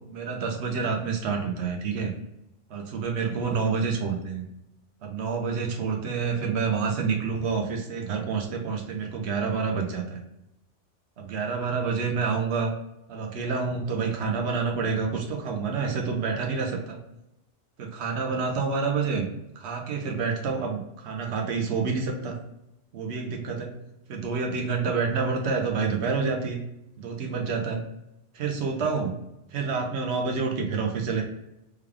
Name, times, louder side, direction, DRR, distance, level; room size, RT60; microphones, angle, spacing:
voice 1, 0.1-2.1 2.7-4.4 5.0-10.2 11.2-12.7 13.1-17.0 17.8-19.3 19.6-22.4 22.9-23.7 24.1-26.6 27.0-27.8 28.3-29.1 29.5-31.2, right 5 dB, 60° right, 2 dB, 1.0 m, -28 dB
3.5 x 2.3 x 3.4 m, 0.86 s
omnidirectional pair, 1.3 m